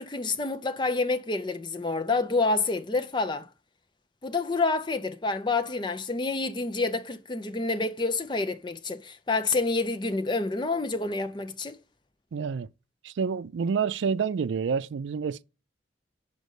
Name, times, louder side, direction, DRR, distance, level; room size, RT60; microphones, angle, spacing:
voice 1, 0.0-3.5 4.2-11.8, left 3 dB, 25° left, 0.6 m, -28 dB
voice 2, 12.3-12.7 13.0-15.4, right 6 dB, 85° right, 0.4 m, -28 dB
5.3 x 5.2 x 6.4 m
head